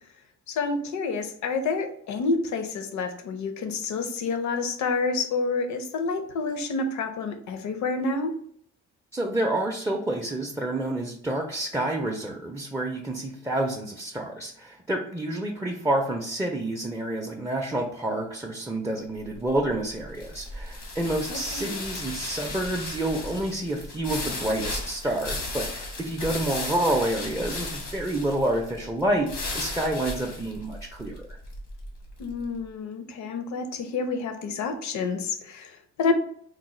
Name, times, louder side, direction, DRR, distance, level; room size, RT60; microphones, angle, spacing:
voice 1, 0.5-8.3 21.3-21.7 32.2-36.1, left 4 dB, 70° left, 8 dB, 0.6 m, -29 dB
voice 2, 9.1-31.2, right 1 dB, 10° right, 0 dB, 0.4 m, -28 dB
sound 1, 19.2-32.4, left 2 dB, 85° left, 1.0 m, -35 dB
3.9 x 2.0 x 3.0 m, 0.66 s
cardioid pair, 90°, 30 cm